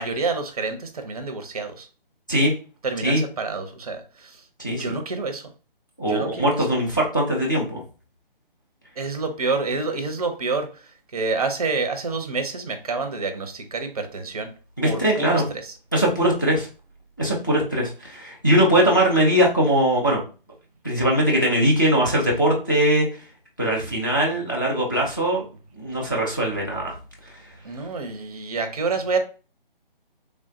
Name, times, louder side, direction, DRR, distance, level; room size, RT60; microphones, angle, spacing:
voice 1, 0.0-1.9 2.8-5.5 6.1-6.7 9.0-14.5 14.8-15.7 27.6-29.2, right 4 dB, 40° right, 7 dB, 0.5 m, -28 dB
voice 2, 4.6-5.0 6.0-7.8 14.8-15.4 15.9-16.7 17.2-20.2 20.8-23.1 23.6-25.4 25.7-27.0, right 1 dB, 20° left, -3 dB, 0.3 m, -21 dB
3.1 x 2.0 x 2.6 m, 0.35 s
figure-of-eight pair, 150°, 29 cm